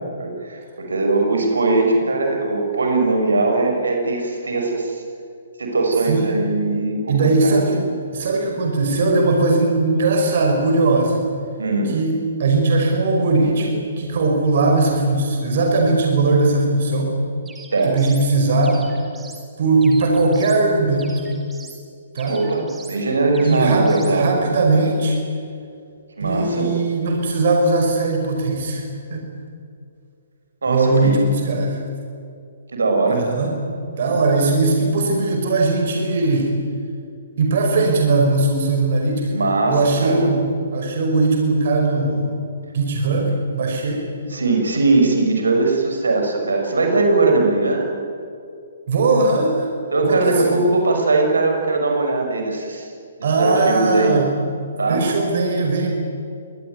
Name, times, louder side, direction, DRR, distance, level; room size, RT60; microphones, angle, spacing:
voice 1, 0.2-5.0 5.6-7.9 11.6-11.9 17.7-18.0 22.2-24.4 26.2-26.7 30.6-31.2 32.7-33.3 39.3-40.3 44.3-47.9 49.9-52.9 53.2-54.2 54.8-55.0, right 3 dB, 80° right, 3 dB, 6.2 m, -20 dB
voice 2, 6.1-6.4 7.1-7.8 8.1-11.2 11.9-17.1 17.9-18.9 19.6-21.2 22.1-22.4 23.4-25.2 26.2-28.8 29.1-29.3 30.7-31.8 33.1-33.5 33.9-36.5 37.4-39.3 39.7-42.5 42.7-44.1 48.9-49.7 50.0-50.6 53.2-54.3 54.9-55.9, right 3 dB, 55° right, 2 dB, 5.6 m, -19 dB
sound 1, 17.5-18.3 18.6-19.5 19.8-20.6 21.0-21.8 22.2-23.0 23.3-24.2, right 4 dB, 10° right, 3.4 m, -42 dB
25.5 x 21.0 x 9.5 m, 2.4 s
figure-of-eight pair, 135°, 0 cm